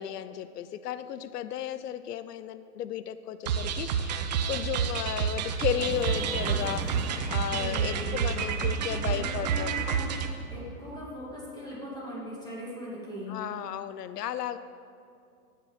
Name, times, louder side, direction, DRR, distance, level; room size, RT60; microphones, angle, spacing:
voice 1, 0.0-9.7 13.3-14.6, left 10 dB, 90° left, 13 dB, 0.6 m, -34 dB
sound 1, 3.5-10.3, right 7 dB, 30° right, 0.4 m, -29 dB
sound 2, 5.8-10.9, right 1 dB, 5° right, 1.5 m, -42 dB
voice 2, 7.5-10.1 10.5-13.4, equal, 10° left, -5 dB, 2.4 m, -40 dB
14.0 x 9.4 x 4.2 m, 2.4 s
hypercardioid pair, 150°, 46 cm